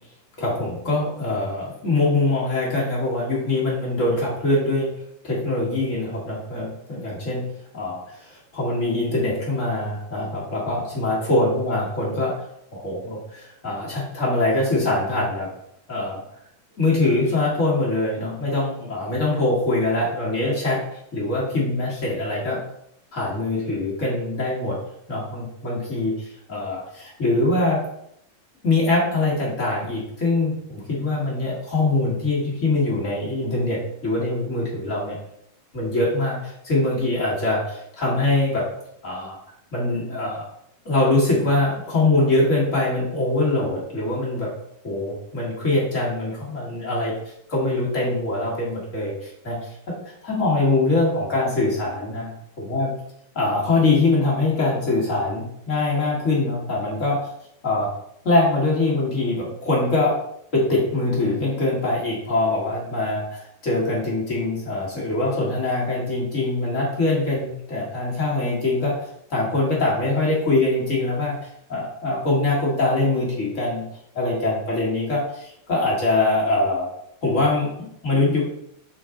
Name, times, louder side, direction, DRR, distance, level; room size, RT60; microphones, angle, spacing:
voice 1, 0.4-4.9 5.2-7.4 7.7-12.3 12.7-15.5 15.9-16.2 16.8-20.8 21.1-22.6 23.1-24.8 25.1-27.8 28.6-35.2 35.7-38.6 39.0-39.4 39.7-40.4 40.8-44.5 44.8-47.1 47.5-49.7 50.2-52.3 52.7-52.9 53.3-57.2 57.6-57.9 58.2-60.1 60.5-69.0 69.3-71.3 71.7-73.8 74.1-76.9 77.2-78.5, left 2 dB, 35° left, -5 dB, 1.5 m, -23 dB
7.1 x 4.0 x 3.7 m, 0.75 s
omnidirectional pair, 3.5 m